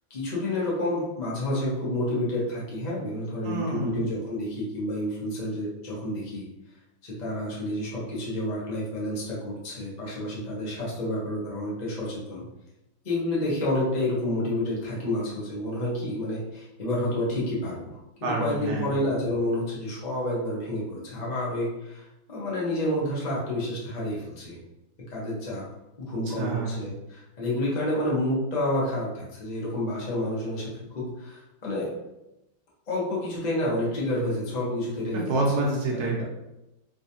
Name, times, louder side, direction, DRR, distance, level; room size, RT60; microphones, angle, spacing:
voice 1, 0.1-6.4 7.0-12.4 13.0-17.9 18.2-22.0 22.3-24.6 25.1-25.6 26.0-31.9 32.9-35.4 35.9-36.2, left 1 dB, 30° left, -6 dB, 0.9 m, -29 dB
voice 2, 3.4-4.0 18.2-18.9 26.4-26.7 35.1-36.2, right 2 dB, 65° right, -2 dB, 1.3 m, -27 dB
3.3 x 3.1 x 2.7 m, 0.93 s
omnidirectional pair, 1.9 m